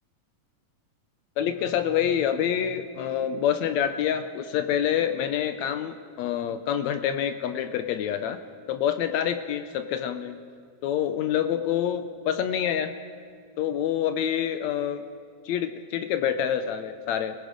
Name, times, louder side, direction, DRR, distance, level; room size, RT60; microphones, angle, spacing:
voice 1, 1.4-8.4 8.7-10.4 10.8-12.9 13.6-15.0 15.4-17.3, left 9 dB, 80° left, 9 dB, 1.6 m, -27 dB
30.0 x 17.5 x 5.1 m, 2.1 s
omnidirectional pair, 3.9 m